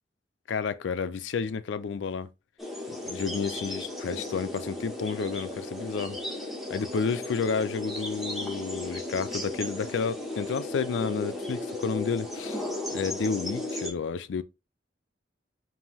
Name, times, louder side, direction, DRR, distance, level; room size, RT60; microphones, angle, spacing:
voice 1, 0.5-2.3 3.1-6.2 6.7-14.4, left 5 dB, 80° left, 0.4 m, -31 dB
sound 1, 2.6-13.9, left 1 dB, ahead, 0.9 m, -35 dB
5.4 x 2.6 x 3.0 m
head